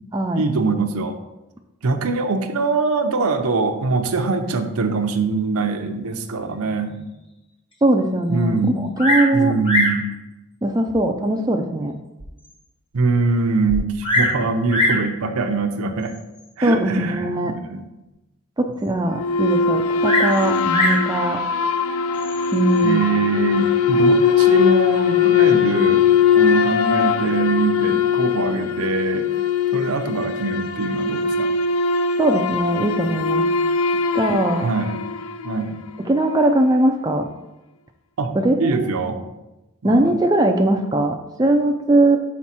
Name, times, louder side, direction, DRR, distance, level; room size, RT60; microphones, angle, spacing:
voice 1, 0.3-1.2 1.8-7.0 8.3-8.8 9.3-10.1 12.9-16.1 16.6-17.9 22.8-26.0 26.3-29.3 29.7-31.5 34.6-35.0 35.4-35.8 38.2-39.2 39.8-40.2, right 4 dB, 75° right, 6 dB, 0.6 m, -23 dB
voice 2, 7.8-8.6 9.0-9.5 10.6-11.9 16.6-17.5 18.6-21.4 22.5-23.0 32.2-33.4 34.1-34.6 36.0-37.3 38.4-38.9 39.8-42.2, right 1 dB, 15° right, 3 dB, 0.3 m, -20 dB
Bird vocalization bird call bird song, 9.0-9.4 9.6-10.0 10.9-11.0 11.6-11.7 12.2-12.3 12.5-12.6 13.7-14.4 14.7-15.1 16.1-16.4 20.0-21.1 22.1-22.6, left 1 dB, 25° left, 1.0 m, -21 dB
sound 1, 19.1-35.7, left 6 dB, 70° left, 0.4 m, -20 dB
6.0 x 4.3 x 4.2 m, 0.99 s
head